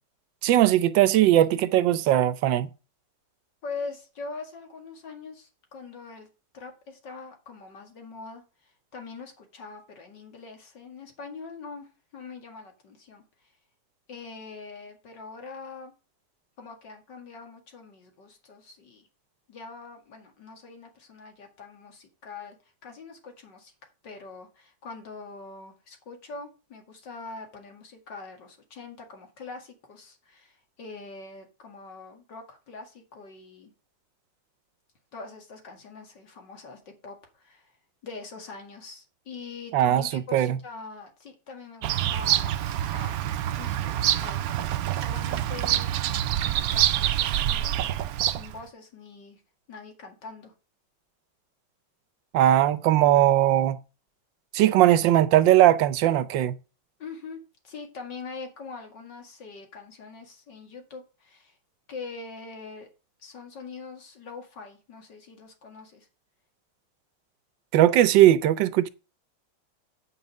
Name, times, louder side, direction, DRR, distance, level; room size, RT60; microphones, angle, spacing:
voice 1, 0.4-2.7 39.7-40.6 52.3-53.8 54.5-56.5 67.7-68.9, right 12 dB, 85° right, 1.4 m, -19 dB
voice 2, 3.6-6.3 6.5-13.5 14.1-15.9 16.6-19.1 19.5-23.7 24.0-33.7 35.1-37.7 38.0-43.2 43.6-46.1 46.4-49.4 49.7-50.5 57.0-61.6 61.9-62.9 63.2-66.1, left 4 dB, 75° left, 2.8 m, -43 dB
Bird vocalization bird call bird song, 41.8-48.6, right 12 dB, 70° right, 0.9 m, -26 dB
8.6 x 5.6 x 5.3 m
omnidirectional pair, 2.0 m